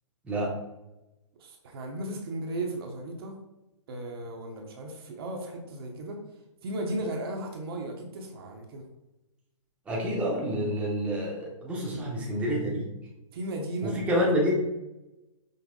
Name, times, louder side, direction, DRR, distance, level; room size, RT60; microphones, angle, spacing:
voice 1, 1.4-3.4 3.9-6.2 6.6-8.9 11.9-12.3 13.3-14.5, right 1 dB, 45° right, 2 dB, 0.8 m, -36 dB
voice 2, 9.9-12.9 13.8-14.5, equal, 5° right, -5 dB, 0.8 m, -28 dB
5.4 x 2.0 x 3.7 m, 0.97 s
hypercardioid pair, 145°, 17 cm